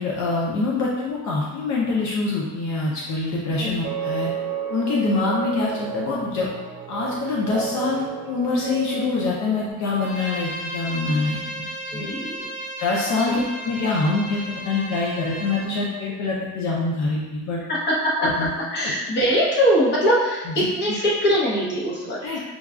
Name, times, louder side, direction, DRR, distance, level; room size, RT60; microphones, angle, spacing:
voice 1, 0.0-4.3 4.7-6.5 6.9-12.1 12.8-17.6 18.2-18.5 18.8-18.9 20.5-20.7 22.2-22.4, left 3 dB, 70° left, -4 dB, 0.6 m, -25 dB
sound 1, 3.8-9.7, right 9 dB, 80° right, 0.5 m, -31 dB
Bowed string instrument, 10.0-15.6, equal, ahead, 1.1 m, -34 dB
voice 2, 11.9-12.4 13.3-13.4 17.7-18.3 18.7-22.4, equal, 35° left, -5 dB, 0.9 m, -22 dB
5.3 x 2.3 x 2.4 m, 1.1 s
cardioid pair, 170°, 29 cm